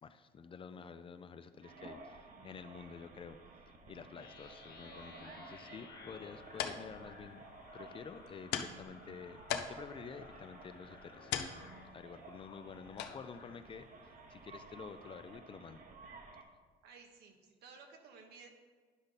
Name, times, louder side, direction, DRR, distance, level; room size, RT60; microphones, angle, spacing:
voice 1, 0.0-3.4 3.9-7.5 7.7-9.4 9.7-11.3 11.9-15.8, left 6 dB, 30° left, 10 dB, 0.4 m, -50 dB
sound 1, 1.6-16.4, right 3 dB, 50° right, 1.0 m, -55 dB
sound 2, 4.1-13.6, left 4 dB, 60° left, 1.8 m, -57 dB
sound 3, 6.1-15.4, left 9 dB, 85° left, 0.6 m, -45 dB
voice 2, 16.8-18.5, right 5 dB, 75° right, 3 dB, 1.3 m, -56 dB
10.0 x 5.2 x 4.1 m, 1.5 s
cardioid pair, 110°, 17 cm